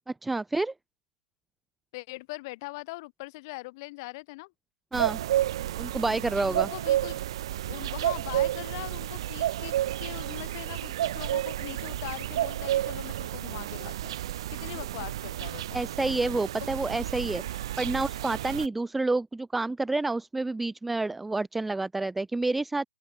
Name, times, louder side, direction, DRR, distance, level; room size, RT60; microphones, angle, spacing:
voice 1, 0.2-0.7 4.9-5.2 5.8-6.7 15.7-22.8, right 2 dB, ahead, 0.3 m, -29 dB
voice 2, 1.9-4.5 6.4-7.2 7.7-15.8, left 23 dB, 25° left, 1.1 m, -41 dB
sound 1, 4.9-18.7, right 13 dB, 35° right, 1.2 m, -31 dB
open air
hypercardioid pair, 160°, 5 cm